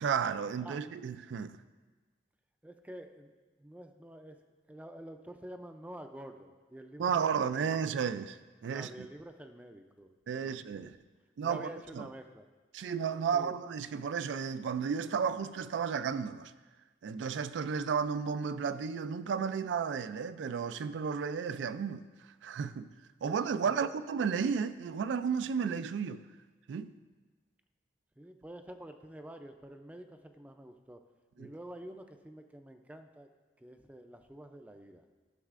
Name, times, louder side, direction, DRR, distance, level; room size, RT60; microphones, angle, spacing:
voice 1, 0.0-1.6 7.0-9.1 10.3-11.0 11.4-11.7 11.9-12.1 12.7-16.5 17.0-22.1 22.4-22.9 23.2-26.2 26.7-26.9 31.4-31.5, right 6 dB, 85° right, 0.3 m, -33 dB
voice 2, 2.6-4.4 4.7-7.8 8.7-10.9 11.4-12.4 13.3-13.6 23.6-23.9 28.2-31.0 31.4-33.3 33.6-35.0, right 1 dB, 10° right, 0.3 m, -48 dB
13.0 x 6.4 x 2.5 m
head